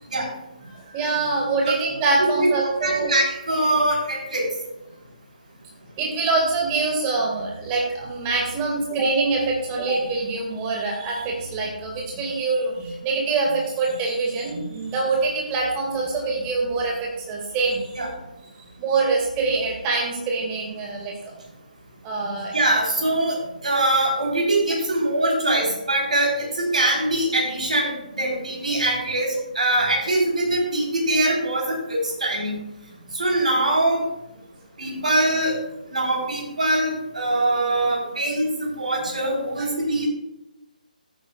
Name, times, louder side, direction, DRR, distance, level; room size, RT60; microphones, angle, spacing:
voice 1, 0.7-3.1 6.0-18.0 18.6-21.1 22.0-22.6, right 3 dB, 20° right, -1 dB, 2.1 m, -24 dB
voice 2, 2.8-4.5 18.0-18.1 22.5-32.6 33.1-34.0 34.8-35.5 35.9-40.1, right 1 dB, 55° right, -2 dB, 3.8 m, -23 dB
14.0 x 9.1 x 2.4 m, 0.94 s
figure-of-eight pair, 145°, 5 cm